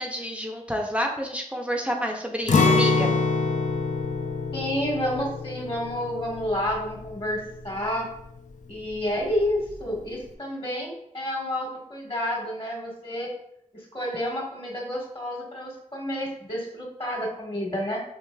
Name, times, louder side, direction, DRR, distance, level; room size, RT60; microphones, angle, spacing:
voice 1, 0.0-3.1, equal, 10° right, 1 dB, 0.5 m, -29 dB
Acoustic guitar, 2.5-8.4 8.7-8.9 9.3-9.8, left 4 dB, 65° left, 0.4 m, -26 dB
voice 2, 4.5-8.1 8.7-13.3 13.7-18.0, equal, 40° left, -2 dB, 1.3 m, -30 dB
4.7 x 2.9 x 2.2 m, 0.73 s
wide cardioid pair, 50°, 14 cm